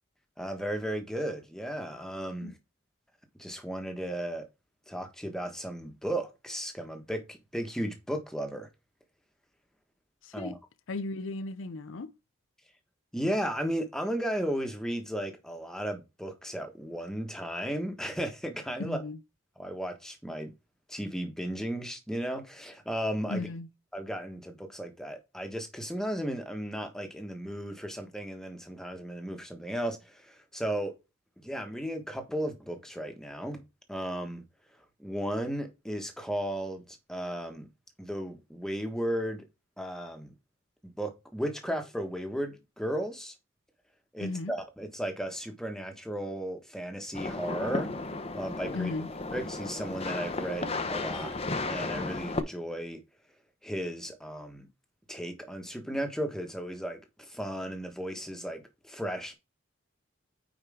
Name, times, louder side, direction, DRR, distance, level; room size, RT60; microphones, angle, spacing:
voice 1, 0.4-2.5 3.4-4.5 4.9-8.7 10.3-10.5 13.1-19.0 19.6-20.5 20.9-23.5 23.9-30.9 31.4-33.6 33.9-34.4 35.0-37.7 38.0-39.5 39.8-40.3 40.8-43.3 44.1-47.9 48.3-48.9 49.3-51.3 51.7-53.0 53.6-54.7 55.1-59.3, equal, 5° left, 1.4 m, -35 dB
voice 2, 10.2-10.6 10.9-12.1 18.8-19.2 23.3-23.7 44.2-44.5 48.7-49.1, left 2 dB, 70° left, 0.6 m, -35 dB
sound 1, 47.1-52.4, left 2 dB, 30° left, 0.8 m, -34 dB
9.0 x 4.9 x 3.6 m
head